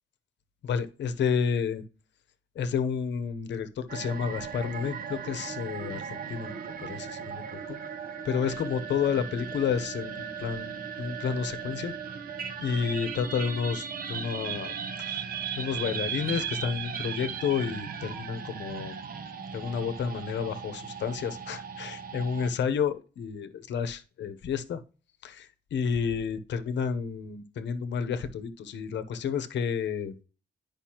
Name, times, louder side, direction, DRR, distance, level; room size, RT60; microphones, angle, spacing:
voice 1, 0.6-1.8 2.6-7.8 8.2-11.9 12.6-14.7 15.1-15.2 15.6-18.9 19.5-24.8 25.2-30.1, left 6 dB, 80° left, 11 dB, 0.8 m, -31 dB
sound 1, 3.9-22.5, right 7 dB, 55° right, 0.8 m, -37 dB
10.5 x 5.3 x 2.9 m, 0.36 s
wide cardioid pair, 175°, 18 cm